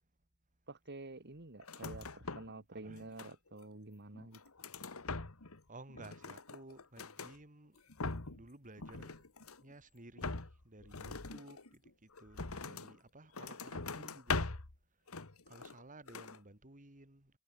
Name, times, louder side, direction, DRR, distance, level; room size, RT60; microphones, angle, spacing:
voice 1, 0.7-4.4, right 2 dB, 55° right, 2.4 m, -49 dB
sound 1, 1.6-2.6 2.9-3.6 4.1-5.6 5.9-7.4 7.8-8.5 8.8-9.7 10.2-13.0 13.3-14.8 15.1-15.8 16.1-16.4, left 3 dB, 85° left, 1.9 m, -42 dB
voice 2, 2.7-3.0 5.7-7.8 8.3-9.1 9.6-10.3 10.7-14.5 15.5-17.4, right 2 dB, 40° right, 3.7 m, -55 dB
head